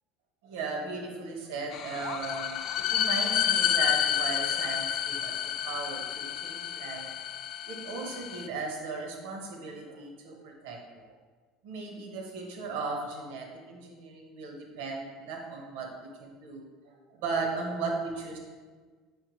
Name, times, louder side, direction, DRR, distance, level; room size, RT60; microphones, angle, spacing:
voice 1, 0.4-2.6 2.9-7.1 7.7-10.8 11.6-15.9 16.2-18.4, right 4 dB, 85° right, 1 dB, 1.2 m, -36 dB
sound 1, 1.7-8.5, left 10 dB, 45° left, 0.3 m, -30 dB
8.5 x 5.5 x 3.2 m, 1.5 s
cardioid pair, 160°, 0 cm